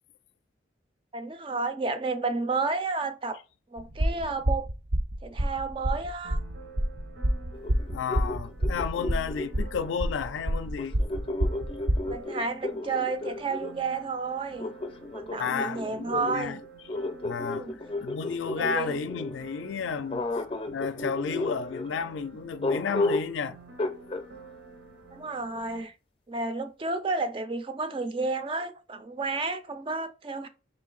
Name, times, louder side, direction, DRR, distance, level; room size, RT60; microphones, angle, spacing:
voice 1, 1.1-3.4 3.7-4.7 5.2-6.4 12.0-14.8 15.1-16.6 17.4-17.8 18.6-19.0 25.1-25.9 26.3-30.5, right 3 dB, 30° right, 0.4 m, -31 dB
sound 1, 3.8-12.1, equal, 65° right, 0.7 m, -28 dB
sound 2, 6.2-25.8, right 2 dB, 80° right, 1.0 m, -50 dB
sound 3, 7.5-9.9 10.8-13.7 14.6-19.4 20.1-21.9 22.6-23.4 23.8-24.3, left 2 dB, 30° left, 0.5 m, -33 dB
voice 2, 7.9-11.0 15.4-16.6 17.2-17.7 18.0-20.2 20.7-23.6, left 6 dB, 85° left, 0.4 m, -32 dB
3.7 x 2.7 x 3.8 m
head